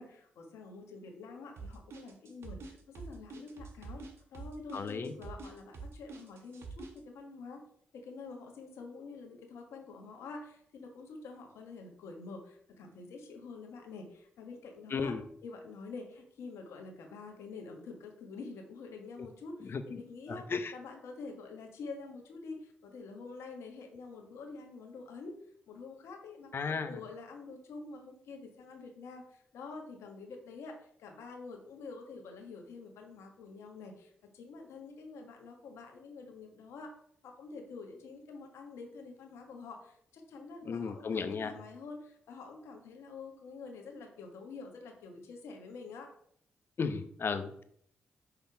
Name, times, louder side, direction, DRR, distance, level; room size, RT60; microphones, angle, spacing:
voice 1, 0.0-4.0 4.3-7.6 7.9-15.1 15.4-25.3 25.7-37.0 37.2-46.1, left 4 dB, 75° left, 3 dB, 1.2 m, -47 dB
sound 1, 1.6-7.0, right 4 dB, 65° right, 1.1 m, -46 dB
voice 2, 4.7-5.1 14.9-15.2 19.6-20.0 20.3-20.7 26.5-27.0 40.6-41.5 46.8-47.6, left 5 dB, 55° left, 9 dB, 0.7 m, -35 dB
5.9 x 3.5 x 4.6 m, 0.66 s
hypercardioid pair, 40°, 5 cm